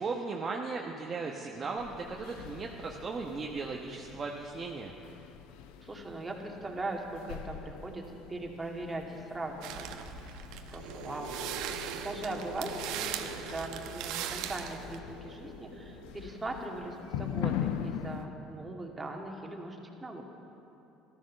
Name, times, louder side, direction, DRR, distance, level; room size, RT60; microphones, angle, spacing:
voice 1, 0.0-4.9, right 4 dB, 35° right, 0 dB, 1.1 m, -37 dB
sound 1, 1.8-18.3, left 9 dB, 80° left, 0.7 m, -42 dB
voice 2, 5.8-9.9 10.7-20.2, right 2 dB, 20° right, 0 dB, 2.3 m, -40 dB
sound 2, 9.6-15.0, right 9 dB, 70° right, 0.9 m, -39 dB
sound 3, 10.6-18.2, right 2 dB, 90° right, 1.2 m, -47 dB
13.5 x 13.0 x 6.6 m, 2.9 s
supercardioid pair, 85°, 0 cm